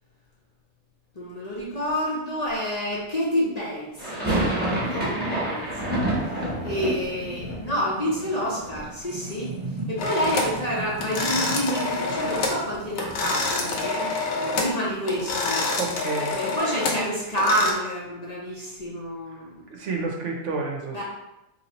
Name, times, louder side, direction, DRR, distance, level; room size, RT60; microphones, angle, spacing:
voice 1, 1.1-15.7 16.3-19.6 20.9-21.0, equal, 40° left, -6 dB, 0.7 m, -29 dB
sound 1, 4.0-9.9 10.2-11.0 11.3-11.4 11.7-13.8, right 1 dB, 10° right, 1.0 m, -30 dB
voice 2, 4.6-5.3 15.8-16.4 19.7-21.0, right 4 dB, 70° right, 1 dB, 1.0 m, -31 dB
sound 2, 7.1-15.4, right 3 dB, 55° right, 0.3 m, -40 dB
sound 3, 10.0-10.6 11.0-12.6 12.9-14.8 15.1-17.7, left 3 dB, 65° left, 0.9 m, -27 dB
3.1 x 2.7 x 4.1 m, 0.94 s
omnidirectional pair, 1.3 m